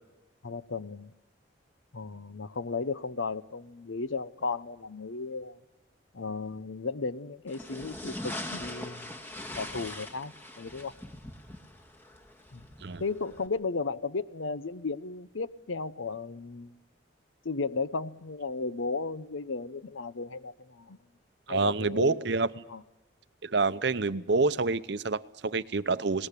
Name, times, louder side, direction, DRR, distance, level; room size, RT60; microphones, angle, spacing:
voice 1, 0.4-1.1 1.9-5.6 6.1-9.2 9.6-10.9 12.5-12.6 13.0-16.8 17.4-21.0 21.5-22.2 22.7-22.8, left 4 dB, 75° left, 15 dB, 0.8 m, -35 dB
sound 1, 7.5-13.5, left 1 dB, 10° left, 1.7 m, -42 dB
voice 2, 21.5-22.5 23.4-26.3, right 3 dB, 55° right, 14 dB, 0.7 m, -27 dB
21.5 x 18.5 x 10.0 m, 1.1 s
head